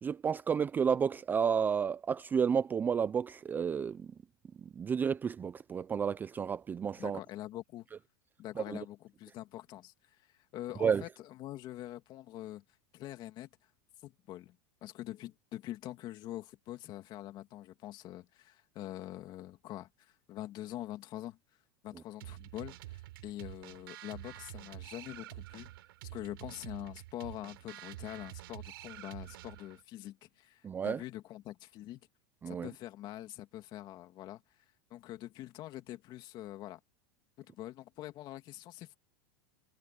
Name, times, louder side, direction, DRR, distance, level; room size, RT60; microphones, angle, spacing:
voice 1, 0.0-4.1 4.8-7.2 8.7-8.8 10.8-11.0 30.6-31.0 32.4-32.7, right 7 dB, 15° right, 0.4 m, -31 dB
voice 2, 7.0-7.9 8.4-9.9 10.2-12.6 12.9-13.5 14.0-14.6 14.8-21.4 21.8-25.7 26.1-32.0 32.5-34.4 34.9-36.8 37.4-39.0, left 14 dB, 40° left, 2.6 m, -44 dB
sound 1, 22.2-29.8, right 16 dB, 80° right, 4.6 m, -48 dB
supercardioid pair, 150°, 12 cm